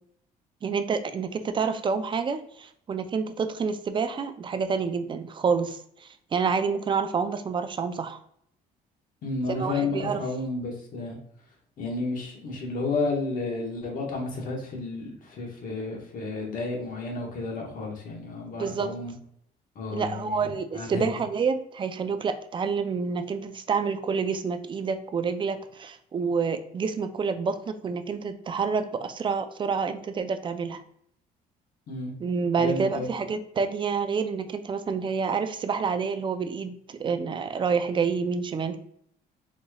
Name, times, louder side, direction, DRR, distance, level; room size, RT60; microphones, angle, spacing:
voice 1, 0.6-8.2 9.5-10.2 18.6-18.9 19.9-30.8 32.2-38.8, right 5 dB, 30° right, 9 dB, 0.4 m, -28 dB
voice 2, 9.2-11.2 11.8-19.1 19.7-20.5 20.7-21.1 31.9-32.1 32.6-33.1, left 3 dB, 55° left, 0 dB, 1.3 m, -31 dB
4.2 x 3.0 x 2.2 m, 0.68 s
cardioid pair, 110°, 17 cm